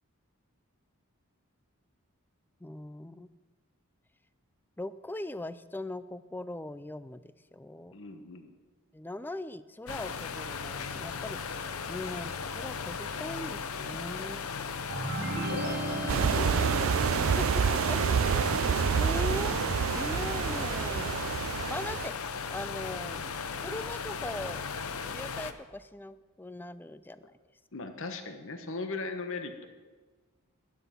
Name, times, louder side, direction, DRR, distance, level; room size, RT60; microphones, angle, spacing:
voice 1, 2.6-3.3 4.8-7.9 8.9-11.6 11.9-14.4 17.4-18.0 18.3-18.6 18.9-21.2 21.7-23.2 23.6-24.6 25.0-27.2, left 2 dB, 10° left, 14 dB, 0.4 m, -40 dB
voice 2, 7.9-8.5 13.7-13.8 15.4-16.9 27.7-29.7, left 3 dB, 65° left, 7 dB, 1.2 m, -39 dB
sound 1, 9.9-25.5, left 5 dB, 80° left, 0.8 m, -36 dB
sound 2, 14.9-17.7, right 1 dB, 50° right, 1.1 m, -35 dB
sound 3, 16.1-22.1, right 7 dB, 65° right, 0.4 m, -28 dB
12.5 x 11.5 x 5.8 m, 1.4 s
head